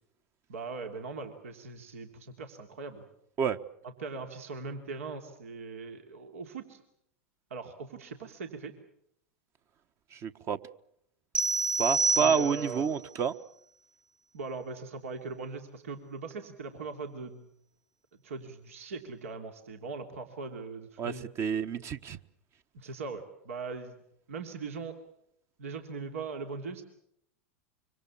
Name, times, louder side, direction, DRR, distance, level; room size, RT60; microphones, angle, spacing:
voice 1, 0.5-3.1 3.8-6.8 7.5-8.7 12.2-12.9 14.3-17.5 18.2-21.3 22.7-24.0 24.3-25.0 25.6-26.8, right 4 dB, 80° right, 2.9 m, -40 dB
voice 2, 10.1-10.6 11.8-13.3 21.0-22.2, right 6 dB, 35° right, 1.3 m, -29 dB
sound 1, 11.3-12.9, right 3 dB, 15° right, 1.1 m, -28 dB
25.5 x 24.5 x 7.2 m
hypercardioid pair, 100°, 7 cm